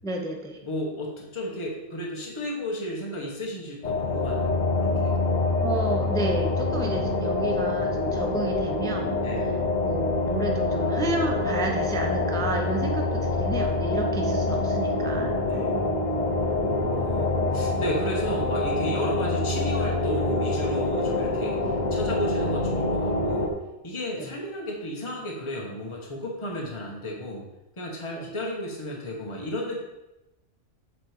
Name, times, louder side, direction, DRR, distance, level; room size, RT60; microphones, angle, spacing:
voice 1, 0.0-0.6 5.6-9.2 9.8-15.4 24.2-24.3, right 2 dB, 5° left, 2 dB, 0.5 m, -31 dB
voice 2, 0.6-5.4 9.2-9.6 15.4-15.9 16.5-23.5 23.8-27.4 27.8-29.8, left 1 dB, 25° left, -2 dB, 1.3 m, -33 dB
sound 1, 3.8-23.5, left 2 dB, 40° left, 0.9 m, -26 dB
7.7 x 4.2 x 5.1 m, 0.96 s
omnidirectional pair, 1.3 m